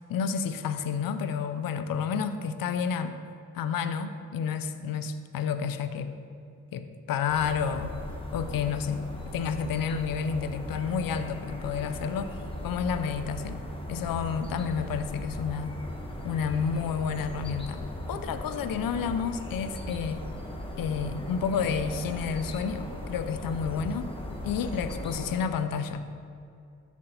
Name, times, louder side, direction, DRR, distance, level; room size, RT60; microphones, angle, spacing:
voice 1, 0.1-3.2 3.5-6.1 6.7-7.9 8.3-9.0 9.3-12.4 12.6-13.6 13.9-15.8 16.2-17.8 18.1-20.2 20.8-24.1 24.4-26.0, left 6 dB, 85° left, 10 dB, 0.7 m, -30 dB
sound 1, 7.3-25.4, left 1 dB, 15° left, 1.5 m, -38 dB
13.5 x 6.1 x 4.1 m, 2.5 s
cardioid pair, 65°, 33 cm